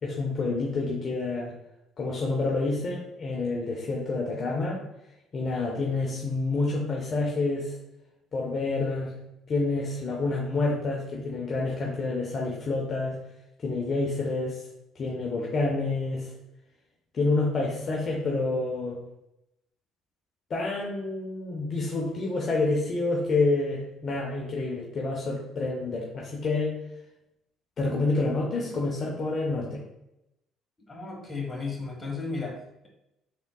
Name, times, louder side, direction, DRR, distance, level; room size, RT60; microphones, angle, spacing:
voice 1, 0.0-1.5 2.0-4.8 5.3-7.8 8.3-9.1 9.5-13.2 13.6-14.6 15.0-16.3 17.1-19.0 20.5-26.7 27.8-29.8, left 3 dB, 45° left, -2 dB, 0.8 m, -28 dB
voice 2, 30.9-32.9, left 3 dB, 20° left, -1 dB, 1.5 m, -34 dB
3.7 x 3.6 x 2.3 m, 0.85 s
hypercardioid pair, 60°, 0 cm